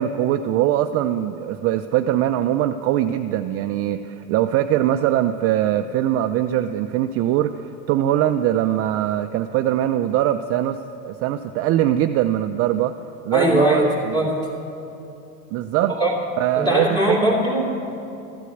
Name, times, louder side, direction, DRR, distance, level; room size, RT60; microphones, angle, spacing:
voice 1, 0.0-10.8 11.0-12.9 13.2-14.1 15.5-15.9 16.4-17.2, right 12 dB, 40° right, 7 dB, 0.4 m, -22 dB
voice 2, 13.3-14.5 15.8-16.1 16.5-17.9, equal, 10° left, -3 dB, 2.9 m, -20 dB
14.0 x 8.2 x 7.9 m, 2.8 s
supercardioid pair, 120°, 38 cm